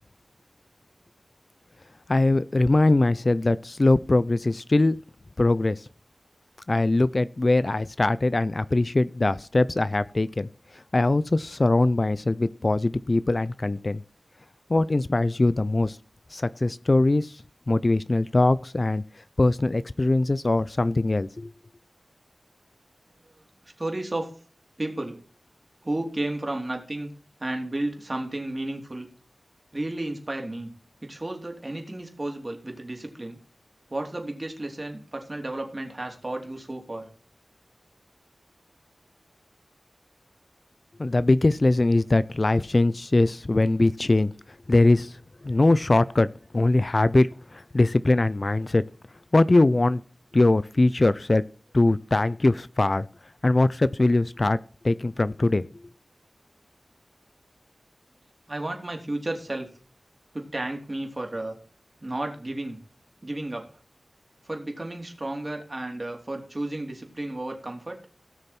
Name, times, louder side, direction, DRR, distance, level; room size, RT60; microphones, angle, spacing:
voice 1, 2.1-5.0 5.4-5.9 6.7-14.0 14.7-16.0 16.3-21.5 41.0-44.3 44.7-46.3 46.5-48.8 49.3-50.0 50.3-51.4 51.7-53.1 53.4-54.6 54.8-55.6, left 2 dB, 40° left, 16 dB, 0.4 m, -22 dB
voice 2, 23.8-24.3 24.8-25.2 25.8-27.1 27.4-29.1 29.7-30.7 31.0-33.4 33.9-37.1 58.5-59.7 60.3-61.6 62.0-62.8 63.2-63.7 64.4-68.0, right 1 dB, 35° right, 3 dB, 3.2 m, -32 dB
17.5 x 6.6 x 4.3 m, 0.41 s
wide cardioid pair, 80°, 0 cm